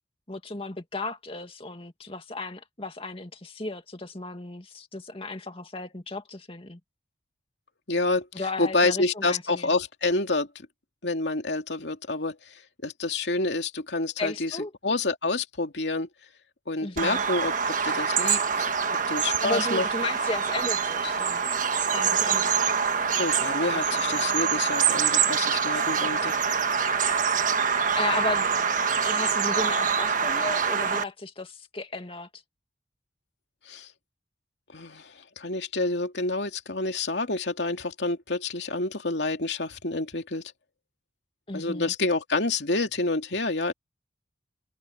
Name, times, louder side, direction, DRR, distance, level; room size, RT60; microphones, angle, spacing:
voice 1, 0.3-6.8 8.3-9.7 14.2-14.7 16.8-17.2 19.4-21.4 21.8-22.6 23.7-23.9 28.0-28.5 29.0-32.4 41.5-41.9, left 2 dB, 30° left, 2.3 m, -34 dB
voice 2, 7.9-8.3 8.6-10.5 11.0-14.6 14.8-16.1 16.7-18.7 19.1-19.8 23.2-26.3 33.7-33.9 34.7-40.4 41.5-43.7, left 3 dB, 70° left, 2.6 m, -28 dB
Bird vocalization bird call bird song, 17.0-31.0, right 6 dB, 45° right, 1.3 m, -25 dB
head